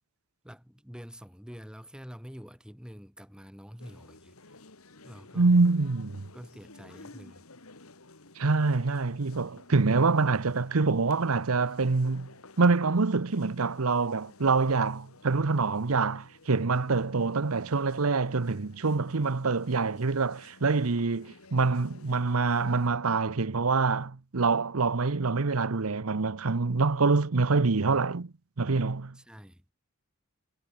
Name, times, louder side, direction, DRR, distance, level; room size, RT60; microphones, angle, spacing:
voice 1, 0.4-4.5 5.0-5.7 6.3-7.5 29.1-29.7, equal, 5° right, 6.0 m, -47 dB
sound 1, 3.8-22.9, left 3 dB, 90° left, 3.2 m, -54 dB
voice 2, 5.3-6.3 8.4-12.3 12.6-29.2, right 4 dB, 85° right, 0.9 m, -26 dB
head